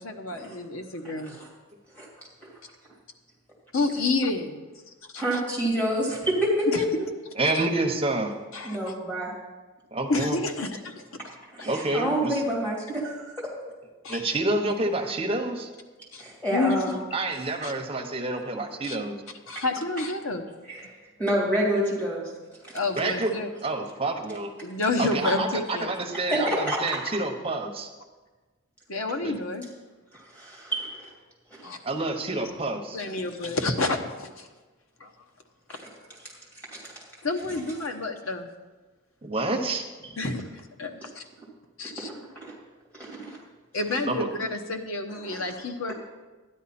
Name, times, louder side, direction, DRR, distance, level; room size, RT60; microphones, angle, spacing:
voice 1, 0.0-1.4 3.7-4.6 5.1-5.4 6.7-6.8 7.5-7.7 8.5-8.8 10.1-11.0 14.0-14.3 16.1-16.2 16.5-17.0 17.3-17.4 17.6-17.7 18.8-19.0 19.5-20.5 22.7-23.5 24.6-25.9 28.9-29.7 31.6-32.1 32.9-34.5 35.0-35.1 37.2-38.5 40.2-40.4 40.8-41.2 41.8-42.1 43.7-45.9, left 3 dB, 85° left, 4 dB, 1.1 m, -29 dB
voice 2, 5.1-7.0 8.6-9.3 11.5-13.5 16.2-17.0 20.7-20.9 21.2-22.3 22.6-22.8 26.3-27.0 30.1-31.1 31.5-31.7 35.7-35.8 36.7-36.9 40.0-40.1 41.0-41.1 42.3-42.5 42.9-43.4 45.1-45.4 45.9-46.0, equal, 10° left, -4 dB, 2.8 m, -28 dB
voice 3, 7.4-8.3 9.9-10.4 11.6-12.3 14.1-15.7 17.1-19.2 22.9-23.3 23.6-24.5 25.0-27.9 29.2-29.3 31.8-33.0 39.2-39.9 44.1-44.3, right 2 dB, 25° right, 2 dB, 1.1 m, -28 dB
12.5 x 10.0 x 4.3 m, 1.3 s
head